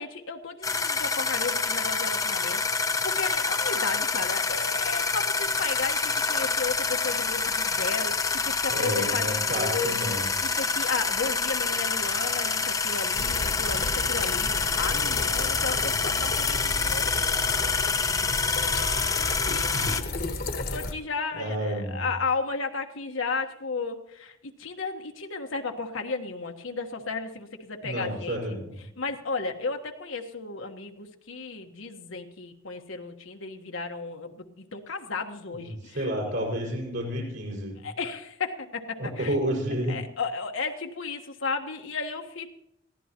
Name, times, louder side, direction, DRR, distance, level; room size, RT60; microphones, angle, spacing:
voice 1, 0.0-18.0 18.4-28.6 29.0-36.3 37.8-39.4 39.9-42.5, left 4 dB, 90° left, 4 dB, 1.3 m, -34 dB
sound 1, 0.6-20.0, left 4 dB, 15° left, 0.6 m, -27 dB
voice 2, 8.7-10.3 19.7-19.9 21.3-22.1 27.8-28.7 35.6-37.9 39.0-40.0, equal, 75° right, -3 dB, 5.2 m, -30 dB
sound 2, 13.1-20.9, left 3 dB, 50° left, 1.2 m, -33 dB
22.0 x 15.5 x 3.0 m, 0.78 s
head